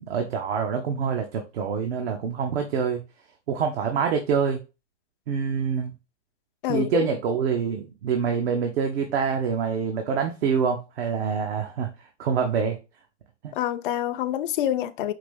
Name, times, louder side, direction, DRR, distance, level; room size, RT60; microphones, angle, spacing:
voice 1, 0.0-3.0 3.5-4.6 5.3-5.9 6.7-11.9 12.2-12.8 13.4-13.5, right 6 dB, 55° right, 0.9 m, -26 dB
voice 2, 6.6-7.1 13.5-15.1, left 12 dB, 45° left, 0.5 m, -26 dB
4.8 x 2.6 x 3.6 m
hypercardioid pair, 130°, 36 cm